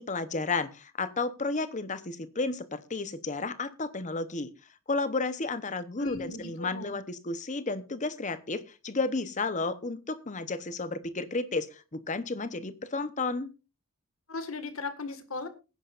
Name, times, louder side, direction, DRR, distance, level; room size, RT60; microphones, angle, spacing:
voice 1, 0.0-4.5 4.9-13.5, left 3 dB, 35° left, 13 dB, 0.9 m, -32 dB
voice 2, 6.0-7.0 14.3-15.5, left 3 dB, 70° left, 9 dB, 1.9 m, -37 dB
21.0 x 10.0 x 2.5 m, 0.31 s
head